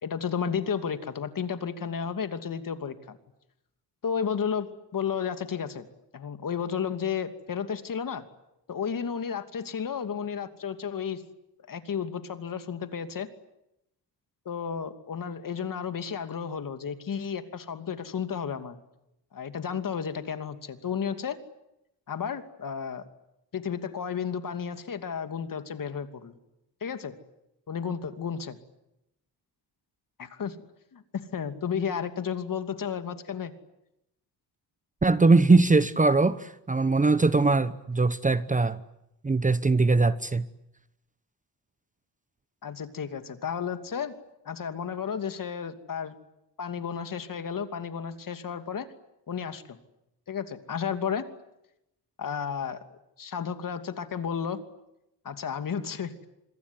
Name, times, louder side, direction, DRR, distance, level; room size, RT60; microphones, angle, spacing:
voice 1, 0.0-3.2 4.0-5.9 6.1-8.2 8.7-11.2 11.7-13.3 14.4-18.8 19.3-21.4 22.1-23.0 23.5-26.3 26.8-27.1 27.7-28.6 30.2-30.6 30.9-33.5 42.6-44.1 44.4-46.1 46.6-48.9 49.3-49.8 50.3-51.2 52.2-52.8 53.2-54.6 55.2-56.1, left 7 dB, 50° left, 9 dB, 2.7 m, -32 dB
voice 2, 35.0-36.4 36.7-38.8 39.2-40.4, right 3 dB, 20° right, 14 dB, 1.0 m, -21 dB
26.5 x 22.0 x 9.7 m, 0.85 s
cardioid pair, 110°, 42 cm